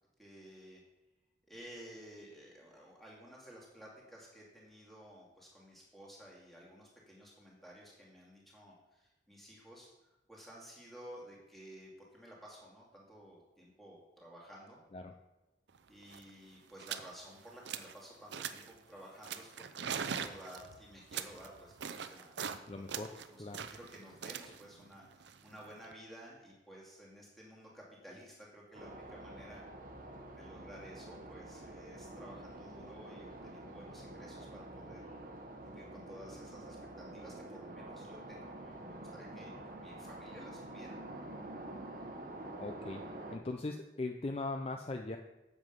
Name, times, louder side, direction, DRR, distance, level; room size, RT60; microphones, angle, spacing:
voice 1, 0.2-0.8 1.5-9.9 10.3-14.8 15.9-22.3 22.9-29.6 30.4-35.2 35.6-39.5 39.8-41.0, equal, ahead, -4 dB, 2.2 m, -54 dB
sound 1, 15.8-15.9 16.0-16.3 16.8-17.1 17.4-18.0 18.3-18.8 19.2-22.6 22.9-25.9, right 7 dB, 70° right, 0.5 m, -42 dB
voice 2, 22.7-23.1 23.4-23.6 42.6-43.0 43.3-45.2, left 2 dB, 30° left, 4 dB, 0.5 m, -39 dB
sound 2, 28.7-43.4, right 1 dB, 45° right, 0.9 m, -47 dB
8.0 x 7.5 x 5.3 m, 1.0 s
head